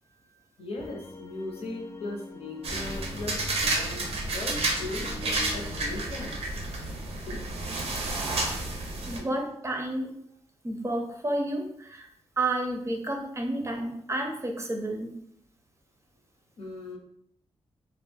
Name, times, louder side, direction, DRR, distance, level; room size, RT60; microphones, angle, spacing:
voice 1, 0.2-6.4 7.1-7.4 8.0-8.3 9.2-9.3 16.6-17.0, left 2 dB, 70° left, 0 dB, 0.7 m, -39 dB
sound 1, 0.8-6.1, left 3 dB, 25° left, 0.3 m, -44 dB
sound 2, 2.6-9.2, right 2 dB, 75° right, 0.6 m, -31 dB
voice 2, 9.1-10.1 10.6-12.1 12.4-15.2, right 1 dB, 25° right, 2 dB, 0.5 m, -31 dB
2.3 x 2.0 x 3.3 m, 0.70 s
cardioid pair, 70°, 11 cm